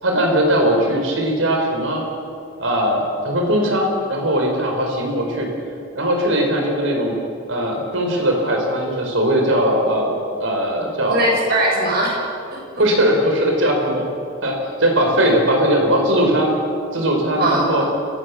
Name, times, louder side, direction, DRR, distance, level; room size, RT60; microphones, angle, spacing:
voice 1, 0.0-2.0 2.6-5.5 5.9-7.1 7.5-11.3 12.8-14.0 14.4-16.5 16.9-17.8, equal, 85° right, 2 dB, 4.8 m, -19 dB
voice 2, 11.1-12.8 17.3-17.8, right 1 dB, 55° right, -2 dB, 7.2 m, -21 dB
29.0 x 15.5 x 7.2 m, 2.4 s
head